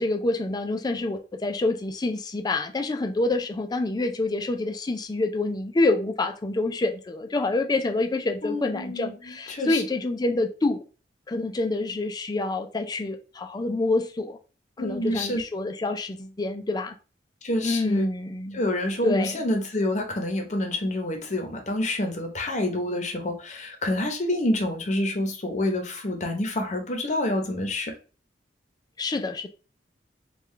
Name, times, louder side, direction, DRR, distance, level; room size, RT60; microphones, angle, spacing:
voice 1, 0.0-10.8 11.3-14.4 14.8-16.9 17.6-18.6 19.0-19.4 29.0-29.5, left 2 dB, 25° left, 0.4 m, -27 dB
voice 2, 8.4-9.8 14.8-15.4 17.4-18.1 18.5-27.9, left 1 dB, 40° left, 0.8 m, -27 dB
3.8 x 2.3 x 3.1 m
head